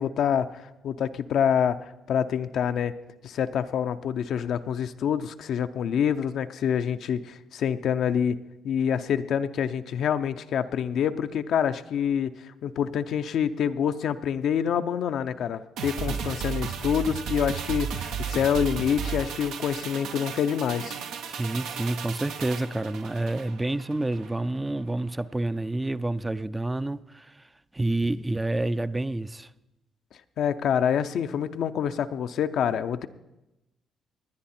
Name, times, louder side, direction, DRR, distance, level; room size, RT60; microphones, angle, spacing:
voice 1, 0.0-2.9 3.2-8.4 8.6-21.0 30.4-33.1, left 8 dB, 70° left, 0.6 m, -26 dB
sound 1, 15.8-24.3 24.7-24.8, right 7 dB, 85° right, 0.9 m, -34 dB
voice 2, 21.3-29.5, right 2 dB, 15° right, 0.4 m, -29 dB
20.0 x 9.8 x 4.3 m
cardioid pair, 90°, 0 cm